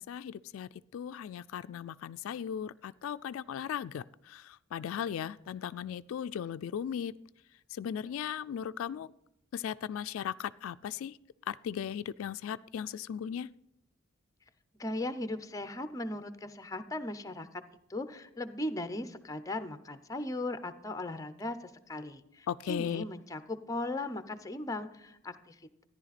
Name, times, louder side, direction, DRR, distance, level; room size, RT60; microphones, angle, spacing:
voice 1, 0.0-7.1 7.7-9.1 9.5-11.2 11.5-13.5 22.5-23.0, left 8 dB, 75° left, 15 dB, 0.3 m, -37 dB
voice 2, 14.8-17.6 17.9-25.8, left 2 dB, 15° left, 10 dB, 0.7 m, -38 dB
14.0 x 10.5 x 4.1 m, 0.83 s
head